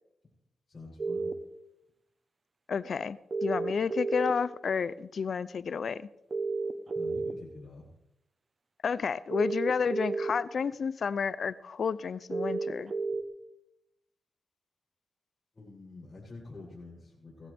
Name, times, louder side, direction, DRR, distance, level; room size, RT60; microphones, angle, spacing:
voice 1, 0.7-1.3 6.9-8.0 15.5-17.5, left 3 dB, 45° left, -8 dB, 7.7 m, -47 dB
sound 1, 1.0-1.3 3.3-4.3 6.3-7.3 9.3-10.3 12.3-13.2, right 3 dB, 50° right, 1.1 m, -31 dB
voice 2, 2.7-6.1 8.8-12.9, left 6 dB, 70° left, 17 dB, 0.5 m, -31 dB
20.0 x 14.5 x 3.5 m, 0.84 s
cardioid pair, 65°, 0 cm